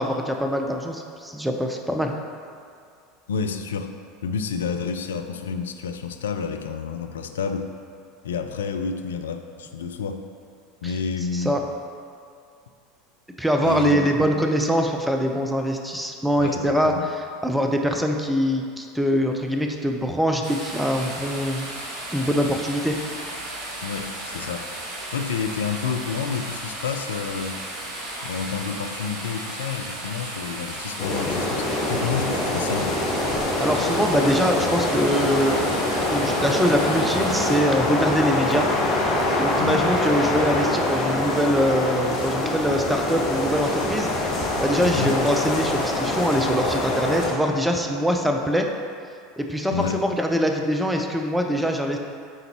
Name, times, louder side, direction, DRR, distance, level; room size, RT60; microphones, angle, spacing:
voice 1, 0.0-2.1 10.8-10.9 11.3-11.6 13.4-21.7 22.1-23.0 33.3-35.6 36.1-38.7 39.4-48.7 49.4-52.0, equal, 5° right, 3 dB, 0.6 m, -23 dB
voice 2, 3.3-3.9 4.2-7.7 8.2-10.3 10.8-11.6 13.6-14.4 16.4-17.1 23.8-24.7 25.1-27.7 28.2-33.0 39.6-39.9 44.8-45.2 49.7-50.1, left 5 dB, 70° left, 7 dB, 0.3 m, -29 dB
sound 1, 20.4-37.6, right 1 dB, 50° right, 1.5 m, -35 dB
sound 2, 31.0-47.3, left 1 dB, 40° left, 1.3 m, -24 dB
9.3 x 3.9 x 2.9 m, 2.4 s
figure-of-eight pair, 75°, 0 cm